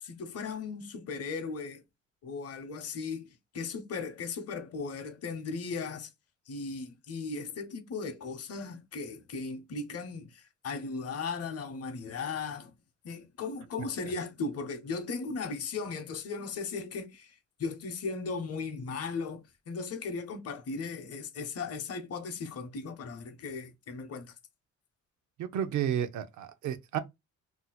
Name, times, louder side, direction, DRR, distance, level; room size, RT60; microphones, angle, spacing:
voice 1, 0.0-1.8 2.2-6.1 6.5-12.7 13.0-17.3 17.6-24.3, left 4 dB, 55° left, 0.8 m, -37 dB
voice 2, 25.4-27.0, right 10 dB, 75° right, 0.5 m, -31 dB
2.7 x 2.1 x 3.9 m
cardioid pair, 90°, 30 cm